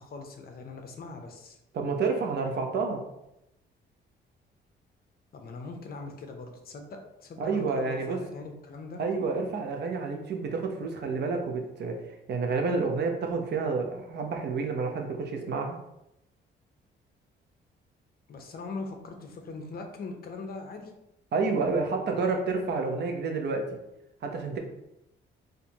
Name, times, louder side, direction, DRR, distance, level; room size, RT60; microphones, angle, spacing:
voice 1, 0.0-1.6 5.3-9.0 18.3-20.9, left 3 dB, 50° left, 4 dB, 0.7 m, -41 dB
voice 2, 1.7-3.0 7.4-8.2 9.0-12.0 12.3-15.8 21.3-23.6 24.2-24.6, right 4 dB, 60° right, 3 dB, 0.7 m, -29 dB
4.3 x 2.6 x 2.8 m, 0.86 s
cardioid pair, 90°, 20 cm